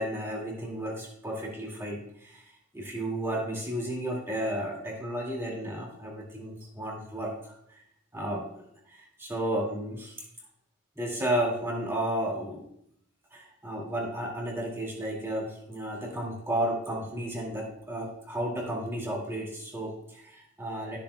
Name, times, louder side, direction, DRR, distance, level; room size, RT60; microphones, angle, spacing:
voice 1, 0.0-2.4 2.7-7.5 8.1-8.5 8.9-10.2 11.0-12.7 13.3-21.0, right 1 dB, 10° right, -3 dB, 2.1 m, -33 dB
13.0 x 7.0 x 2.2 m, 0.74 s
head